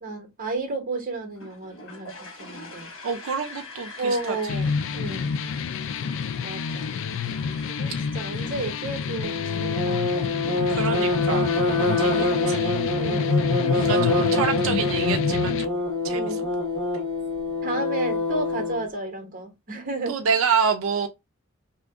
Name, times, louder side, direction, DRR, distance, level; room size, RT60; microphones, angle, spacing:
voice 1, 0.0-2.9 4.0-5.3 5.8-6.0 6.4-7.1 7.7-10.1 10.4-11.1 11.6-12.2 12.9-13.4 13.7-13.9 16.1-16.4 17.6-20.2, right 2 dB, 45° right, 1.1 m, -33 dB
sound 1, 1.4-15.2, left 3 dB, 85° left, 1.4 m, -43 dB
voice 2, 3.0-4.4 10.7-11.5 12.0-12.8 13.7-15.8 16.0-16.4 20.1-21.1, right 6 dB, 85° right, 0.4 m, -27 dB
sound 2, 4.5-15.6, left 5 dB, 70° left, 0.3 m, -28 dB
sound 3, 9.2-18.8, left 2 dB, 25° left, 1.0 m, -25 dB
2.8 x 2.4 x 3.4 m
head